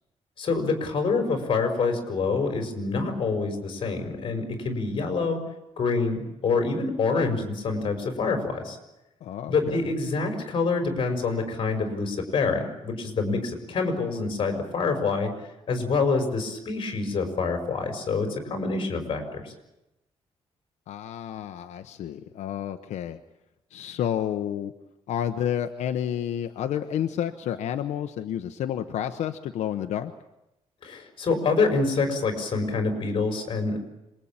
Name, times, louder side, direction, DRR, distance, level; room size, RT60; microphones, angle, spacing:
voice 1, 0.4-5.4 5.8-8.8 9.5-15.3 15.7-19.5 30.8-33.8, left 4 dB, 45° left, 5 dB, 5.7 m, -26 dB
voice 2, 9.2-9.9 20.9-23.2 23.7-24.7 25.1-30.1, left 10 dB, 90° left, 7 dB, 1.1 m, -30 dB
26.5 x 21.5 x 8.9 m, 0.93 s
cardioid pair, 155°, 11 cm